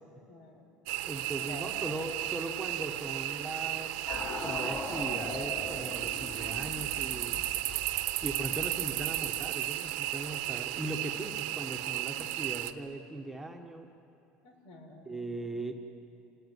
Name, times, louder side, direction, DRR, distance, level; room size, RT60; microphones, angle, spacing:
voice 1, 0.3-0.7 1.4-2.0 14.4-15.3, equal, 75° left, 5 dB, 4.6 m, -49 dB
sound 1, 0.9-12.7, right 15 dB, 85° right, 1.1 m, -34 dB
voice 2, 1.1-4.0 4.4-7.4 8.2-13.9 15.0-15.7, right 2 dB, 5° right, 2 dB, 1.4 m, -39 dB
sound 2, 4.1-10.2, left 3 dB, 45° left, 5.3 m, -42 dB
27.0 x 19.5 x 9.5 m, 2.6 s
cardioid pair, 165°, 3 cm